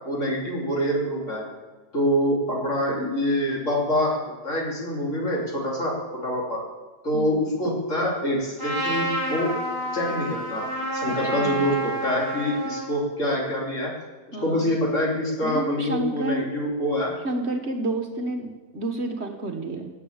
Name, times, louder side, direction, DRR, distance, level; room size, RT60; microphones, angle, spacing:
voice 1, 0.0-1.5 1.9-6.6 7.0-9.5 9.9-14.0 14.3-17.2, equal, 55° left, -2 dB, 3.5 m, -26 dB
Trumpet, 8.6-12.9, right 1 dB, 15° right, 3.5 m, -29 dB
voice 2, 11.1-11.6 14.3-14.7 15.4-16.5 17.2-19.9, right 2 dB, 50° right, 4 dB, 1.5 m, -30 dB
19.0 x 7.1 x 8.6 m, 1.3 s
omnidirectional pair, 1.6 m